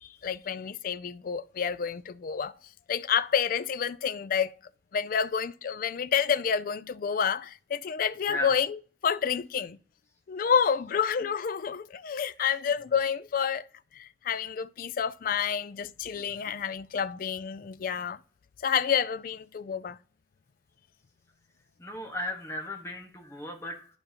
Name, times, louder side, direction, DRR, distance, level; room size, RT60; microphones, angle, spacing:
voice 1, 0.0-2.5 2.9-4.5 4.9-9.8 10.3-13.6 14.0-18.2 18.6-20.0, left 7 dB, 50° left, 0.3 m, -29 dB
voice 2, 21.8-23.9, left 1 dB, 15° left, 1.4 m, -35 dB
11.5 x 5.2 x 2.9 m
head